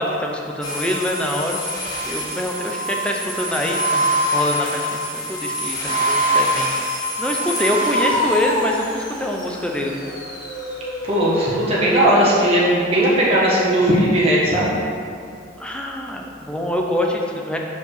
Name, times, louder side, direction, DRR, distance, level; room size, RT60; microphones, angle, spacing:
voice 1, 0.0-1.6 2.1-10.1 15.6-17.6, left 1 dB, 5° left, 0 dB, 0.6 m, -25 dB
sound 1, 0.6-12.3, equal, 20° left, 1.3 m, -25 dB
voice 2, 11.0-14.8, right 1 dB, 35° right, -7 dB, 1.4 m, -17 dB
5.2 x 4.8 x 6.4 m, 2.4 s
head